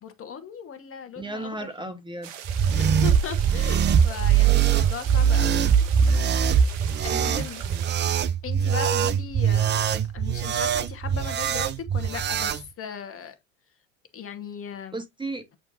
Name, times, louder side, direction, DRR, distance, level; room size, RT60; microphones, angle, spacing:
voice 1, 0.0-1.6 2.7-5.7 7.0-7.6 8.4-13.4 14.1-15.0, left 7 dB, 35° left, 1.5 m, -37 dB
voice 2, 1.2-2.3 14.9-15.6, right 2 dB, 10° right, 1.2 m, -34 dB
sound 1, 2.2-7.9, right 9 dB, 65° right, 1.4 m, -40 dB
sound 2, 2.4-12.6, right 8 dB, 25° right, 0.6 m, -22 dB
8.8 x 4.4 x 2.6 m
hypercardioid pair, 80°, 39 cm